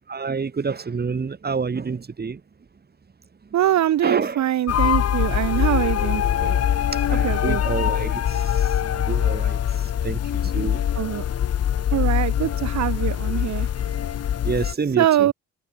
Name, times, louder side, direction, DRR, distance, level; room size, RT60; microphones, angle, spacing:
voice 1, 0.1-2.4 4.0-4.4 7.1-10.8 14.4-15.3, right 5 dB, 30° right, 3.2 m, -28 dB
voice 2, 3.5-6.6 7.2-7.6 10.9-11.2 11.9-13.7 15.0-15.3, right 12 dB, 65° right, 1.5 m, -23 dB
sound 1, 4.7-14.7, left 10 dB, 55° left, 1.4 m, -23 dB
cardioid pair, 90°, 30 cm